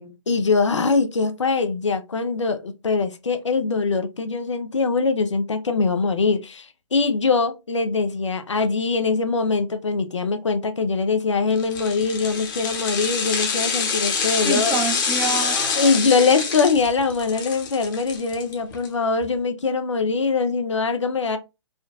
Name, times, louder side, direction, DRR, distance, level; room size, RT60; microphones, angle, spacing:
voice 1, 0.3-14.7 15.8-21.4, left 4 dB, 80° left, 0.6 m, -22 dB
sound 1, 11.6-18.9 19.2-19.3, left 6 dB, 45° left, 1.0 m, -26 dB
voice 2, 14.3-16.4, right 4 dB, 15° right, 0.6 m, -29 dB
3.7 x 2.2 x 2.4 m
figure-of-eight pair, 135°, 15 cm